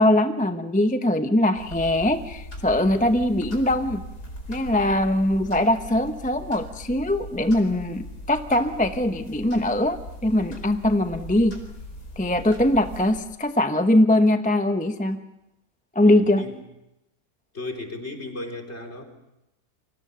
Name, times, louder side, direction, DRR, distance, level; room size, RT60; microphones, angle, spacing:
voice 1, 0.0-4.0 4.5-11.6 12.2-15.2 15.9-16.4, left 1 dB, 5° left, 8 dB, 0.7 m, -21 dB
sound 1, 1.6-13.2, left 1 dB, 80° left, 5.1 m, -40 dB
voice 2, 16.0-16.6 17.5-19.0, left 2 dB, 40° left, 3 dB, 4.1 m, -35 dB
29.0 x 24.5 x 6.8 m, 0.91 s
omnidirectional pair, 1.7 m